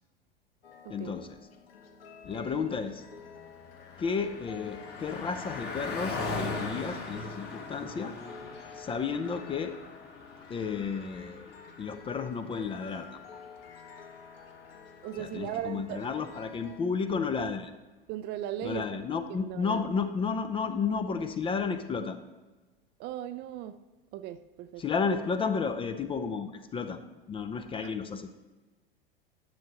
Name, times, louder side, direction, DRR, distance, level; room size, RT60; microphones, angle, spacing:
sound 1, 0.6-16.8, left 6 dB, 80° left, 1.0 m, -50 dB
voice 1, 0.9-1.4 2.2-3.1 4.0-8.1 8.8-9.7 10.5-11.5 11.8-13.4 15.2-17.7 18.6-22.2 24.8-27.0 27.3-28.4, left 5 dB, 20° left, 0.4 m, -32 dB
Car passing by, 3.1-14.9, left 3 dB, 35° left, 1.7 m, -41 dB
voice 2, 15.0-16.1 18.1-18.9 19.4-19.9 23.0-23.8 24.1-24.8 27.8-27.9, right 12 dB, 35° right, 0.4 m, -37 dB
10.5 x 6.4 x 3.0 m
hypercardioid pair, 90°, 30 cm